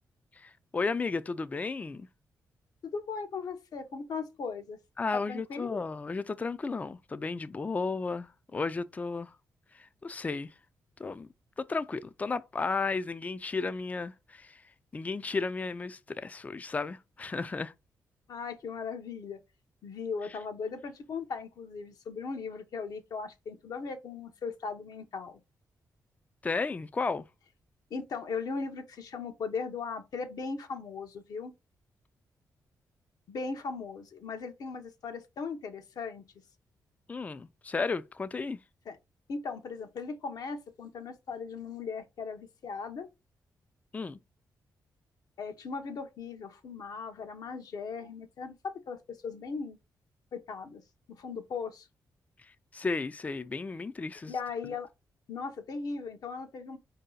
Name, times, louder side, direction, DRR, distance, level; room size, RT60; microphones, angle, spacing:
voice 1, 0.4-2.1 5.0-9.3 9.7-10.5 11.0-11.3 11.6-14.6 14.9-17.7 26.4-27.3 37.1-38.6 43.9-44.2 52.7-54.3, left 4 dB, 20° left, 0.3 m, -33 dB
voice 2, 2.8-4.8 5.1-5.8 18.3-19.4 19.8-25.4 27.9-31.5 33.3-36.2 38.9-39.0 39.3-43.1 45.4-49.8 50.3-50.8 51.2-51.9 54.3-54.9 55.3-56.8, left 5 dB, 70° left, 0.8 m, -38 dB
4.8 x 2.7 x 3.8 m
cardioid pair, 105°, 7 cm